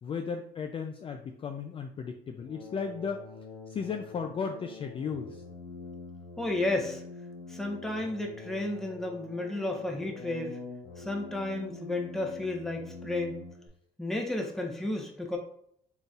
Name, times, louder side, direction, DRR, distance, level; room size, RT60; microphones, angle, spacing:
voice 1, 0.0-3.3 3.7-5.4, left 6 dB, 30° left, 4 dB, 0.4 m, -35 dB
sound 1, 2.4-13.7, left 4 dB, 90° left, 0.9 m, -45 dB
voice 2, 6.4-7.0 7.5-10.6 11.0-13.4 14.0-15.4, left 2 dB, ahead, 0 dB, 0.8 m, -32 dB
4.0 x 3.8 x 2.4 m, 0.69 s
cardioid pair, 110°, 17 cm